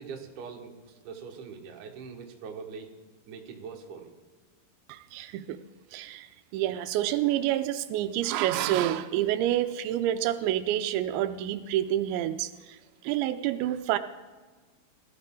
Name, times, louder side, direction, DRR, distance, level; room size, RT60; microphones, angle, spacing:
voice 1, 0.0-2.9 3.3-4.1, right 5 dB, 60° right, 1 dB, 2.4 m, -42 dB
voice 2, 4.9-5.6 5.9-12.8 13.0-14.0, right 12 dB, 85° right, 10 dB, 2.9 m, -28 dB
19.0 x 12.5 x 3.8 m, 1.4 s
omnidirectional pair, 5.1 m